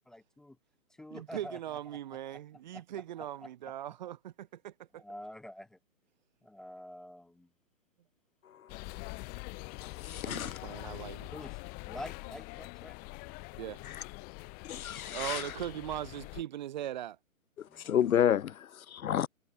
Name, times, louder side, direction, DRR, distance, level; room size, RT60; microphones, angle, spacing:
voice 1, 0.1-0.6 1.0-1.8 2.7-2.8 5.0-5.8 6.4-7.5 11.3-11.6 11.9-13.0 17.7-18.0, left 1 dB, ahead, 0.6 m, -46 dB
voice 2, 1.1-5.0 10.2-11.3 13.6-13.8 15.1-17.2, right 12 dB, 35° right, 0.9 m, -40 dB
sound 1, 8.7-16.4, left 30 dB, 20° left, 2.0 m, -44 dB
voice 3, 9.8-10.6 13.9-14.0 14.7-15.4 17.6-19.3, left 9 dB, 80° left, 0.6 m, -30 dB
figure-of-eight pair, 135°, 41 cm